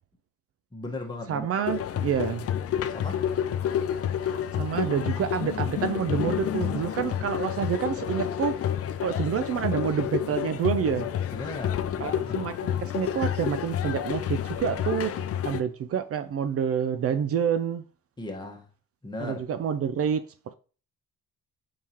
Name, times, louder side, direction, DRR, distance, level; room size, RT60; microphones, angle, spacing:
voice 1, 0.7-1.5 2.9-3.2 11.3-12.4 18.2-18.7 19.0-19.4, left 2 dB, 15° left, 1.3 m, -37 dB
voice 2, 1.3-2.5 4.6-8.6 9.0-11.1 12.0-17.8 19.2-20.2, right 8 dB, 50° right, 0.4 m, -28 dB
sound 1, 1.6-15.6, left 10 dB, 50° left, 0.5 m, -29 dB
4.7 x 3.5 x 2.9 m
cardioid pair, 90°, 30 cm